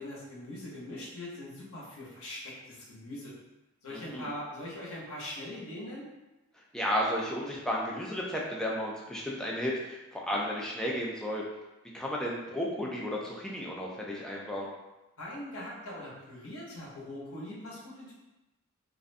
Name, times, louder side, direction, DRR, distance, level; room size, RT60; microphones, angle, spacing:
voice 1, 0.0-3.3 3.8-6.1 15.2-18.1, left 1 dB, 75° left, -5 dB, 0.8 m, -41 dB
voice 2, 3.9-4.3 6.7-11.4 11.9-14.7, equal, 5° left, -3 dB, 0.3 m, -33 dB
2.5 x 2.1 x 2.5 m, 1.0 s
head